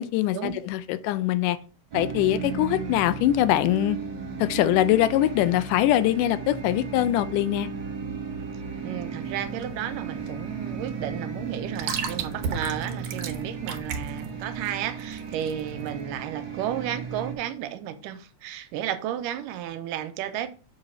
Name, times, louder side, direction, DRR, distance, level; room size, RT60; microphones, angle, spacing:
voice 1, 0.0-1.6 1.9-4.0 4.4-7.7, left 13 dB, 80° left, 2.0 m, -23 dB
sound 1, 1.9-17.3, right 5 dB, 45° right, 1.8 m, -35 dB
voice 2, 8.8-20.5, right 10 dB, 90° right, 2.2 m, -33 dB
sound 2, 9.2-15.9, right 6 dB, 65° right, 1.6 m, -35 dB
7.0 x 3.9 x 5.6 m
omnidirectional pair, 3.8 m